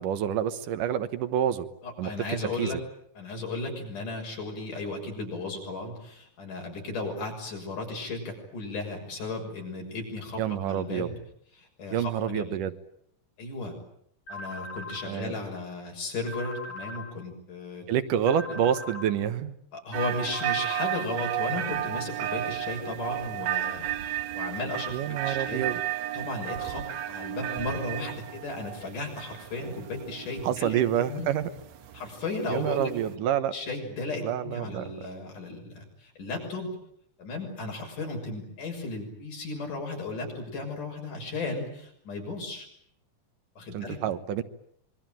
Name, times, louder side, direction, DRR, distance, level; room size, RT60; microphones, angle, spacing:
voice 1, 0.0-1.7 2.0-2.1 2.4-2.8 10.4-11.2 11.9-12.7 15.1-15.3 17.9-19.6 24.9-25.8 30.4-31.5 32.5-33.5 34.2-34.8 43.7-44.4, right 10 dB, 90° right, 11 dB, 2.8 m, -28 dB
voice 2, 1.8-2.8 3.2-11.1 11.6-12.4 13.4-13.8 14.3-17.8 18.5-18.6 19.7-25.6 26.1-30.8 31.1-31.3 31.9-32.9 33.5-36.7 37.2-42.7 43.6-44.0, left 2 dB, 85° left, 1 dB, 8.0 m, -35 dB
sound 1, 14.3-15.0 16.3-17.0 18.3-19.0 20.3-21.0, left 1 dB, 45° left, 6.0 m, -39 dB
sound 2, 19.9-33.1, right 12 dB, 65° right, 2.4 m, -34 dB
26.0 x 22.5 x 9.1 m, 0.70 s
omnidirectional pair, 3.6 m